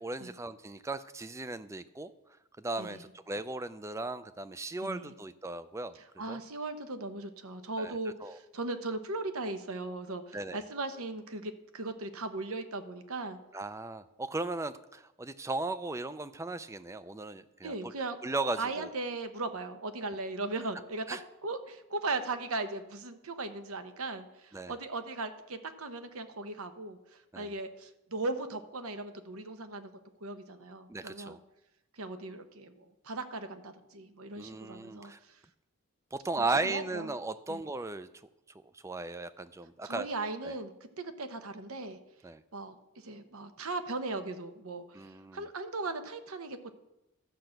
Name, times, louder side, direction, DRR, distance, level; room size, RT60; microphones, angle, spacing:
voice 1, 0.0-2.1 2.6-6.4 7.8-8.4 10.3-10.6 13.5-17.7 18.2-18.9 21.1-21.2 24.5-24.8 27.3-27.5 30.9-31.4 34.4-35.2 36.1-38.1 38.7-40.1 40.4-40.5 42.2-42.4 44.9-45.4, right 2 dB, 15° right, 13 dB, 0.3 m, -36 dB
voice 2, 4.8-5.1 6.2-13.4 17.6-18.2 18.6-21.1 21.4-31.4 31.9-35.4 36.4-37.1 37.5-37.6 39.8-42.0 42.5-42.8 43.0-46.7, right 3 dB, 75° right, 9 dB, 1.0 m, -38 dB
12.0 x 5.8 x 7.7 m, 0.94 s
head